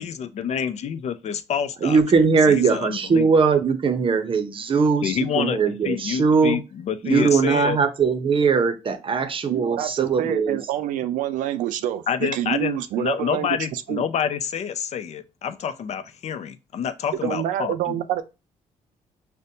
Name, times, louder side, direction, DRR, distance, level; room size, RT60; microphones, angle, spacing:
voice 1, 0.0-2.0 2.5-3.4 5.0-7.8 12.1-18.0, left 8 dB, 60° left, 0.4 m, -28 dB
voice 2, 1.8-6.6 7.0-10.6, right 5 dB, 40° right, 0.6 m, -20 dB
voice 3, 9.5-14.0 17.2-18.2, right 12 dB, 85° right, 0.4 m, -27 dB
5.1 x 2.1 x 2.7 m
cardioid pair, 80°, 13 cm